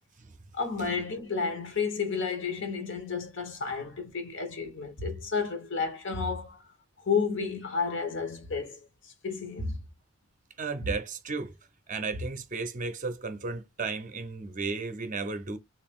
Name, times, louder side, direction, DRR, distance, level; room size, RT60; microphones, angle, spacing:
voice 1, 0.5-6.6 7.0-9.8 10.8-10.9, left 5 dB, 60° left, 1.0 m, -31 dB
voice 2, 10.6-11.5 11.9-15.6, right 4 dB, 35° right, 0.6 m, -34 dB
3.4 x 2.5 x 3.5 m
head